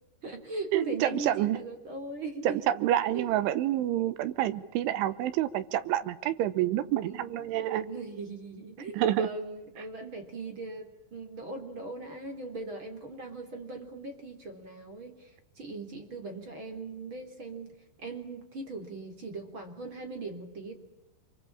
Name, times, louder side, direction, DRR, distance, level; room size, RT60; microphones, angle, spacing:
voice 1, 0.2-2.6 3.1-3.4 6.6-15.3 15.6-17.7 18.0-20.7, right 3 dB, 30° right, 4 dB, 3.7 m, -40 dB
voice 2, 0.7-1.6 2.5-7.9 8.9-9.3, right 12 dB, 75° right, 14 dB, 3.4 m, -28 dB
27.0 x 24.0 x 8.8 m, 0.94 s
omnidirectional pair, 5.7 m